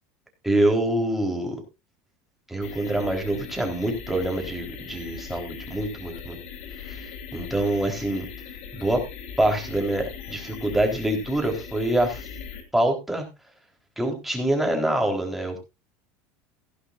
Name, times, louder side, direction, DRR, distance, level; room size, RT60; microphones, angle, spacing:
voice 1, 0.4-1.6 2.5-6.4 6.8-8.3 8.8-9.0 9.4-12.3 12.7-13.3 14.0-15.6, right 1 dB, 5° right, 2 dB, 3.9 m, -25 dB
sound 1, 2.6-12.6, left 7 dB, 85° left, 3.5 m, -39 dB
15.5 x 11.5 x 2.5 m, 0.26 s
supercardioid pair, 135°, 7 cm